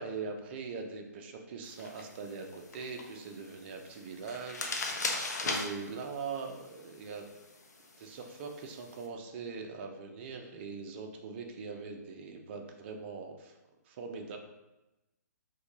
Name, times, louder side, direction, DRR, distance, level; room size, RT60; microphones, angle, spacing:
voice 1, 0.0-7.3 8.0-13.6 13.9-14.4, right 4 dB, 40° right, 3 dB, 0.4 m, -42 dB
sound 1, 1.6-9.0, left 3 dB, 70° left, 0.6 m, -40 dB
4.3 x 2.2 x 3.0 m, 0.99 s
figure-of-eight pair, 130°, 10 cm